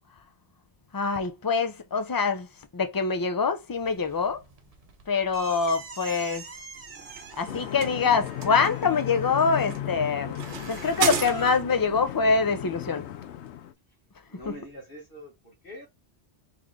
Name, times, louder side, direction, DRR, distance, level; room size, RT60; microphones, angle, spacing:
voice 1, 0.9-2.5 2.7-4.4 5.1-6.4 7.4-10.4 10.7-13.1 14.5-14.6, left 5 dB, 30° left, 0.4 m, -25 dB
Squeaky Door, 3.7-11.6, right 4 dB, 40° right, 0.7 m, -45 dB
sound 1, 6.8-11.9, right 7 dB, 80° right, 1.1 m, -34 dB
sound 2, 7.5-13.7, left 11 dB, 80° left, 0.9 m, -36 dB
voice 2, 14.3-15.9, equal, 55° left, 1.8 m, -44 dB
3.6 x 3.3 x 3.2 m
omnidirectional pair, 1.1 m